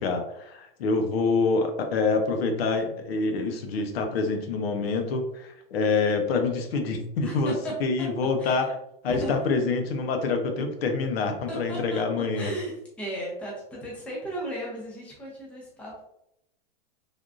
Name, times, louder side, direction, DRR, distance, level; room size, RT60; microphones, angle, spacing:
voice 1, 0.0-7.5 7.8-8.7 9.0-12.5, left 4 dB, 85° left, 5 dB, 0.7 m, -26 dB
voice 2, 7.2-7.7 8.4-8.7 9.1-9.4 11.5-12.0 12.3-16.0, right 1 dB, 5° left, -4 dB, 0.5 m, -35 dB
3.4 x 2.4 x 2.4 m, 0.79 s
supercardioid pair, 160°, 30 cm